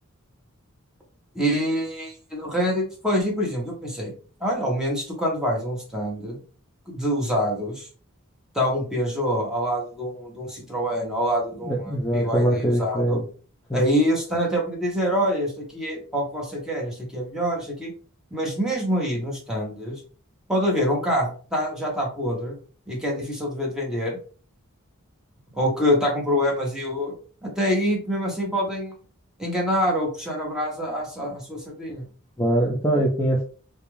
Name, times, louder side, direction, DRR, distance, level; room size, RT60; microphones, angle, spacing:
voice 1, 1.3-4.1 4.4-6.4 6.9-7.9 8.5-13.2 13.7-17.9 18.3-20.0 20.5-22.5 22.9-24.2 25.5-27.1 27.4-29.0 29.4-32.1, equal, 5° right, -2 dB, 0.8 m, -25 dB
voice 2, 11.6-13.2 13.7-13.9 32.4-33.4, right 1 dB, 10° left, -3 dB, 0.4 m, -22 dB
2.4 x 2.2 x 3.0 m, 0.40 s
head